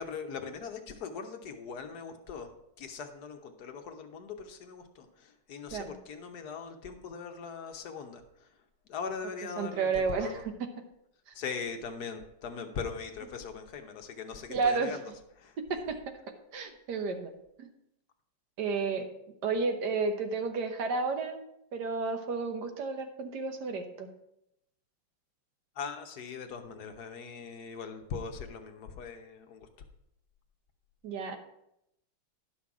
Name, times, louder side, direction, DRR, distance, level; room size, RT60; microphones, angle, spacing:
voice 1, 0.0-8.5 8.9-10.4 11.3-15.0 15.4-15.6 25.8-29.7, left 5 dB, 60° left, 6 dB, 1.2 m, -40 dB
voice 2, 9.6-10.5 11.3-11.4 14.5-15.0 15.7-16.0 16.5-17.3 17.6-17.7 18.6-19.1 19.4-21.4 21.7-24.1 31.0-31.4, right 4 dB, 60° right, 7 dB, 1.4 m, -31 dB
11.5 x 5.7 x 4.8 m, 0.80 s
omnidirectional pair, 2.3 m